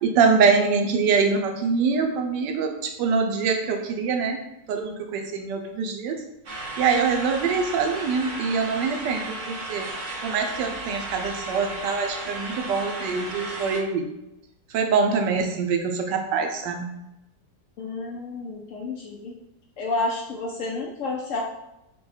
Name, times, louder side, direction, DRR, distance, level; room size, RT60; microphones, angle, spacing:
voice 1, 0.0-4.4 4.7-6.2 6.8-9.9 10.2-14.1 14.7-16.9, right 5 dB, 90° right, 4 dB, 1.3 m, -24 dB
sound 1, 6.5-13.8, right 2 dB, 55° right, 0.5 m, -34 dB
voice 2, 17.8-19.3 19.8-21.4, left 3 dB, 70° left, -1 dB, 0.8 m, -30 dB
4.7 x 2.2 x 4.3 m, 0.91 s
omnidirectional pair, 1.8 m